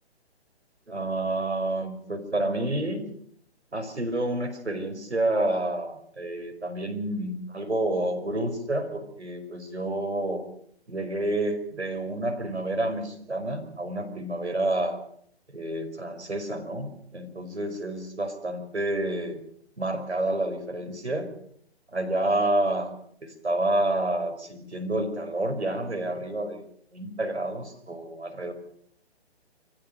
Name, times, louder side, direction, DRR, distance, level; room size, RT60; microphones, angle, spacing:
voice 1, 0.9-3.0 3.7-10.4 10.9-15.0 15.5-19.4 19.8-21.3 21.9-22.9 23.2-26.6 26.9-28.5, right 1 dB, 85° right, 5 dB, 5.3 m, -29 dB
26.0 x 14.5 x 6.9 m, 0.64 s
figure-of-eight pair, 140°, 33 cm